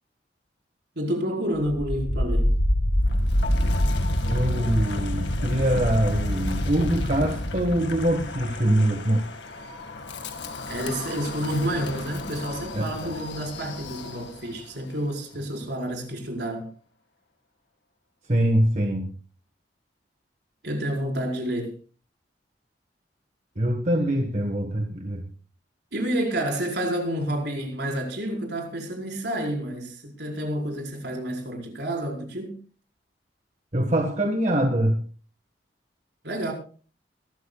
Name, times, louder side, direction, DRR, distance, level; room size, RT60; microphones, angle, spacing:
voice 1, 0.9-2.5 10.7-16.7 20.6-21.7 25.9-32.6 36.2-36.5, right 1 dB, 65° right, 4.9 m, -29 dB
Wind, 1.7-14.6, left 1 dB, 80° left, 1.9 m, -28 dB
voice 2, 4.3-9.2 12.7-13.1 18.3-19.1 23.6-25.2 33.7-35.0, right 1 dB, 45° right, 1.5 m, -24 dB
22.5 x 13.5 x 2.4 m
head